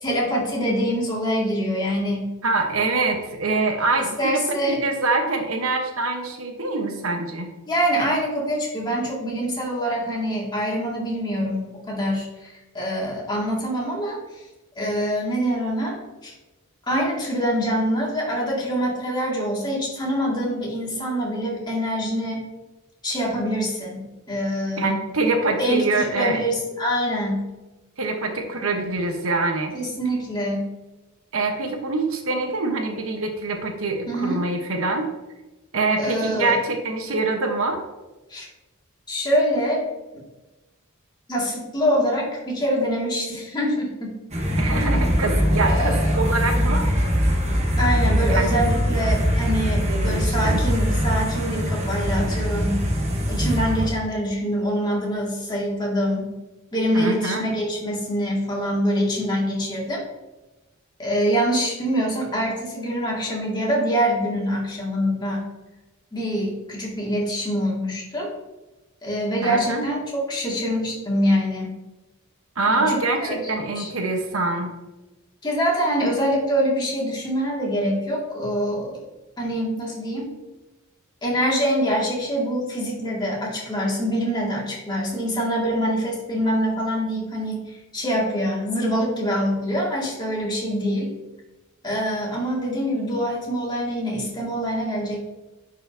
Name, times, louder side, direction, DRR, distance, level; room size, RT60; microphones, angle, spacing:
voice 1, 0.0-2.3 4.2-4.8 7.7-14.2 14.8-16.3 16.9-22.4 23.0-25.0 25.6-27.5 29.7-30.6 34.1-34.4 36.0-36.6 38.3-38.5 39.1-39.8 41.3-44.2 44.7-45.1 45.7-46.1 47.8-52.9 53.3-56.3 56.7-60.0 61.0-65.4 66.1-68.3 69.0-71.8 72.7-73.4 73.8-73.9 75.4-79.0 79.4-80.3 81.2-91.1 91.8-95.2, equal, 20° left, -4 dB, 2.0 m, -25 dB
voice 2, 2.4-7.5 24.8-26.4 28.0-29.7 31.3-35.1 35.7-37.8 44.6-46.9 48.3-48.5 49.9-50.6 56.9-57.5 69.4-69.9 72.6-74.7, right 3 dB, 75° right, 4 dB, 1.0 m, -24 dB
sound 1, 44.3-53.9, equal, 30° right, 1.0 m, -22 dB
10.5 x 4.8 x 2.7 m, 1.1 s
head